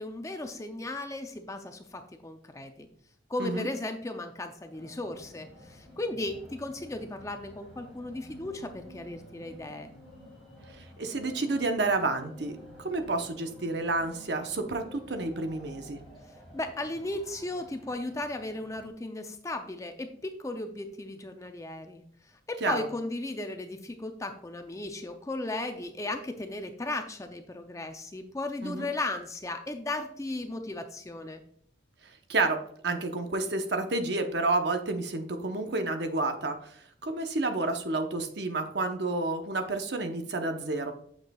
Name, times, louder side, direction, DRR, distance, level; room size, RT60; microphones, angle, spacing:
voice 1, 0.0-2.9 3.3-9.9 16.2-31.4, left 2 dB, 15° left, 6 dB, 0.4 m, -36 dB
sound 1, 4.7-18.9, left 1 dB, ahead, 2.7 m, -51 dB
voice 2, 10.8-16.0 22.6-22.8 28.6-28.9 32.3-32.6 32.8-40.9, right 2 dB, 60° right, 6 dB, 0.8 m, -30 dB
7.3 x 6.2 x 2.3 m, 0.63 s
head